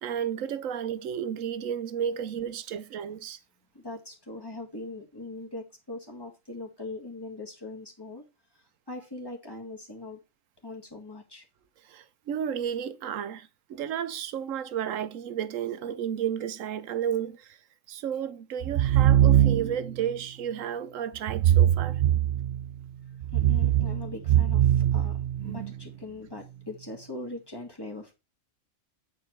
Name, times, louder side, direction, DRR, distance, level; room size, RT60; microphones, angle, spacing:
voice 1, 0.0-3.4 11.8-22.0, right 9 dB, 90° right, 1.1 m, -32 dB
voice 2, 3.7-8.2 8.9-10.2 10.6-11.4 23.3-28.1, left 2 dB, 20° left, 1.9 m, -41 dB
sound 1, 18.6-19.9 21.3-22.7 23.2-25.7, right 11 dB, 65° right, 0.8 m, -22 dB
8.8 x 4.7 x 4.6 m
omnidirectional pair, 1.3 m